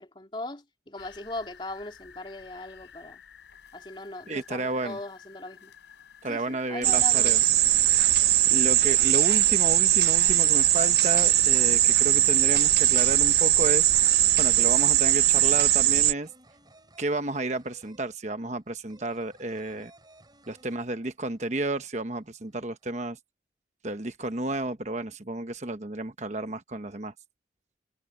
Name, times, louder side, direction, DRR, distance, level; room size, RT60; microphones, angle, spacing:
voice 1, 0.0-3.2 3.7-5.7 6.2-7.4, left 2 dB, 25° left, 3.1 m, -39 dB
sound 1, 1.0-16.0, left 7 dB, 85° left, 3.9 m, -51 dB
voice 2, 4.3-5.0 6.2-7.4 8.5-13.9 14.4-16.3 17.0-19.9 20.5-23.2 23.8-27.1, right 2 dB, 40° right, 1.1 m, -32 dB
sound 2, 6.8-16.1, right 13 dB, 65° right, 0.7 m, -20 dB
sound 3, 15.7-21.4 21.7-21.8 22.1-22.9, right 2 dB, 25° right, 5.2 m, -57 dB
head